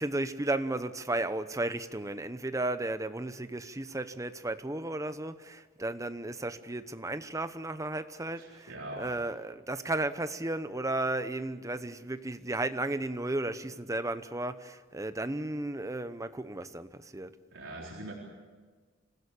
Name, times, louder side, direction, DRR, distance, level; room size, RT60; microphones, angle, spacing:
voice 1, 0.0-8.7 9.0-17.3, right 2 dB, 15° right, 0.9 m, -34 dB
voice 2, 8.3-9.1 17.5-18.1, right 1 dB, 80° right, 3.9 m, -42 dB
26.5 x 16.0 x 8.6 m
head